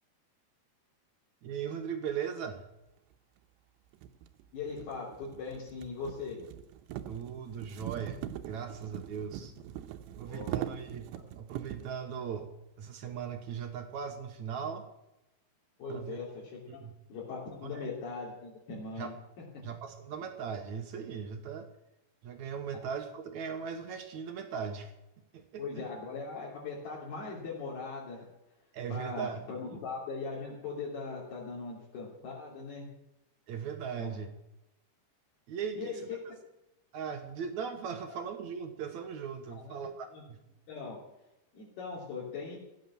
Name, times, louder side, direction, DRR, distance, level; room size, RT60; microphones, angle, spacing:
voice 1, 1.4-2.7 7.1-9.5 10.2-12.5 12.8-14.9 15.9-16.2 16.7-16.9 17.7-17.9 19.0-19.1 19.6-21.7 22.2-24.9 25.3-25.6 28.7-29.4 33.5-34.3 35.5-36.0 36.3-36.4 36.9-40.4, right 7 dB, 70° right, 6 dB, 1.7 m, -38 dB
sound 1, 3.1-3.2 3.9-12.0, right 11 dB, 85° right, 2.9 m, -42 dB
voice 2, 4.5-6.4 10.2-10.5 11.1-11.2 15.8-16.3 16.5-19.1 25.6-28.3 28.9-32.9 34.0-34.1 35.8-36.0 38.0-38.2 39.5-39.8 40.1-40.2 40.7-41.0 41.5-42.6, left 4 dB, 65° left, -6 dB, 5.0 m, -40 dB
15.5 x 9.4 x 7.6 m, 0.90 s
omnidirectional pair, 5.0 m